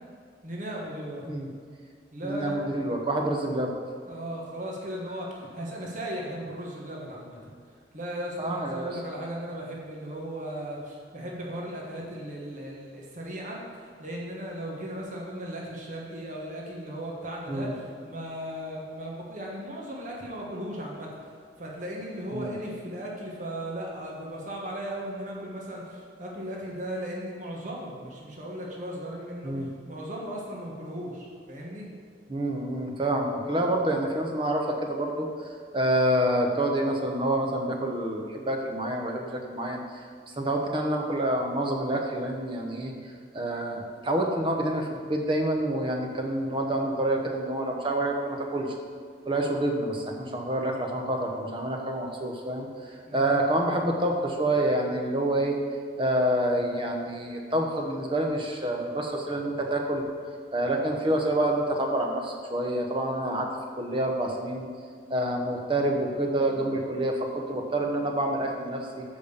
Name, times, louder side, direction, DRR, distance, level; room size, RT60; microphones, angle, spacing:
voice 1, 0.4-1.2 2.1-2.8 4.0-7.5 7.9-21.1 21.6-31.9 53.0-53.4, equal, 45° right, -3 dB, 1.4 m, -37 dB
voice 2, 2.2-3.8 8.4-8.9 17.5-17.7 22.3-22.6 29.4-29.7 32.3-35.3 35.7-39.8 40.4-42.9 43.3-48.7 49.3-55.6 56.0-60.0 60.5-63.5 63.8-64.7 65.1-69.0, right 1 dB, 30° right, 2 dB, 1.0 m, -27 dB
7.6 x 5.3 x 6.7 m, 2.1 s
head